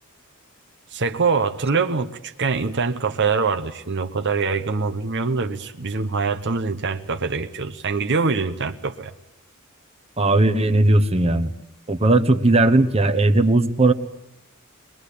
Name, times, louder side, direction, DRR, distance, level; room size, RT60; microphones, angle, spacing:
voice 1, 0.9-9.1, right 4 dB, 55° right, 8 dB, 1.0 m, -24 dB
voice 2, 10.2-11.5 11.9-13.9, right 2 dB, 30° right, 7 dB, 1.1 m, -17 dB
23.5 x 21.0 x 8.4 m, 0.83 s
head